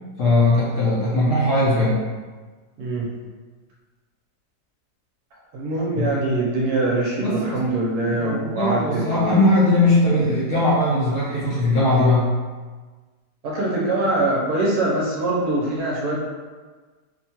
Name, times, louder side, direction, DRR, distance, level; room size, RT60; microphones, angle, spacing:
voice 1, 0.2-2.0 5.9-6.1 7.2-7.6 8.0-12.3, left 2 dB, 65° left, -8 dB, 0.9 m, -19 dB
voice 2, 2.8-3.1 5.5-9.4 13.4-16.2, right 2 dB, 70° right, -3 dB, 1.0 m, -23 dB
3.0 x 2.2 x 2.8 m, 1.4 s
omnidirectional pair, 1.8 m